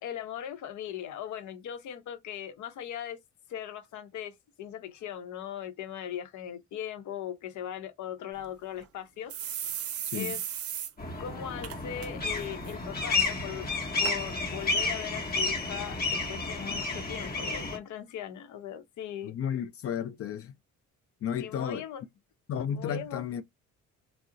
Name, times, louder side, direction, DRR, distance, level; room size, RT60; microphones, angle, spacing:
voice 1, 0.0-3.2 3.5-9.3 9.9-10.4 11.2-13.7 14.0-19.6 21.4-22.0 22.7-23.2, left 10 dB, 75° left, 0.8 m, -39 dB
sound 1, 8.4-8.5 8.8-8.9 9.3-10.9 11.2-11.3 11.6-12.1 12.4-12.7 13.4-13.5 14.0-14.2 14.9-15.0, right 9 dB, 50° right, 0.5 m, -36 dB
sound 2, 11.0-17.8, left 3 dB, 30° left, 1.1 m, -31 dB
voice 2, 19.2-20.5 21.2-21.8 22.5-23.4, left 8 dB, 50° left, 0.4 m, -33 dB
2.4 x 2.0 x 3.8 m
cardioid pair, 90°, 30 cm